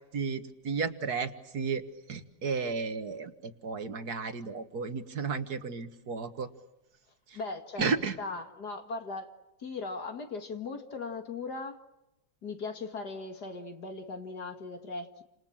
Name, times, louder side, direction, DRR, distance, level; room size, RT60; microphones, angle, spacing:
voice 1, 0.1-6.5 7.3-7.4 7.8-8.2, right 5 dB, 55° right, 10 dB, 2.1 m, -33 dB
voice 2, 7.3-7.9 8.2-11.8 12.4-15.2, left 3 dB, 60° left, 6 dB, 2.6 m, -38 dB
30.0 x 27.0 x 7.3 m, 0.93 s
omnidirectional pair, 2.0 m